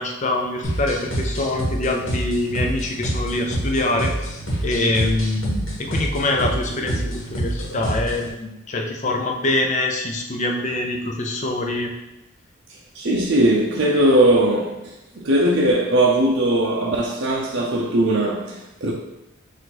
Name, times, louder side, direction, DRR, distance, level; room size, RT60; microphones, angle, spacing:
voice 1, 0.0-11.9, left 2 dB, 35° left, 0.5 m, -24 dB
sound 1, 0.6-8.3, right 1 dB, 70° left, 1.2 m, -27 dB
voice 2, 13.0-14.8 15.1-18.9, right 1 dB, 55° right, 0.5 m, -19 dB
4.6 x 2.6 x 4.0 m
head